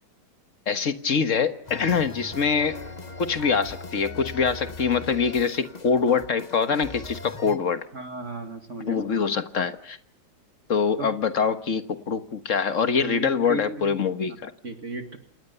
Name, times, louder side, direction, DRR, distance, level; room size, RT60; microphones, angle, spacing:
voice 1, 0.7-2.8 3.2-7.9 8.9-10.0 10.7-14.5, left 6 dB, 45° left, 10 dB, 1.6 m, -24 dB
sound 1, 1.6-7.6, left 4 dB, 25° left, 1.1 m, -40 dB
voice 2, 7.9-9.2 11.0-11.1 13.0-13.9 14.6-15.2, right 3 dB, 40° right, 6 dB, 2.3 m, -35 dB
28.0 x 22.0 x 6.9 m, 0.63 s
omnidirectional pair, 2.0 m